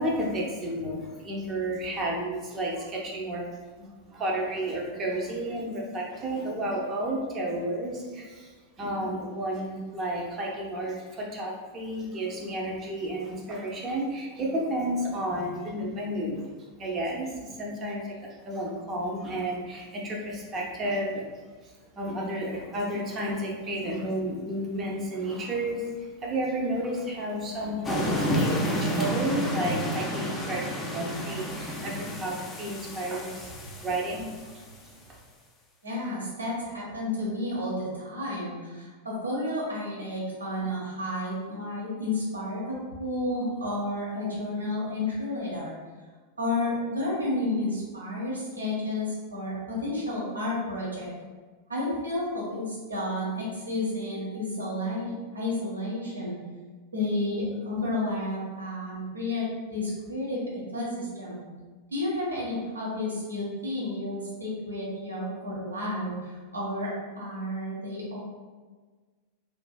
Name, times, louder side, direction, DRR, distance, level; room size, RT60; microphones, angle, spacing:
voice 1, 0.0-3.4 3.8-21.2 21.6-35.2, right 1 dB, 25° right, -2 dB, 0.6 m, -32 dB
sound 1, 27.8-34.5, equal, 15° left, 0.4 m, -30 dB
voice 2, 35.8-45.8 46.4-51.1 51.7-56.4 56.9-60.4 60.7-61.4 61.9-68.2, left 1 dB, 80° right, -6 dB, 1.0 m, -31 dB
3.1 x 2.5 x 2.2 m, 1.4 s
figure-of-eight pair, 90°, 0 cm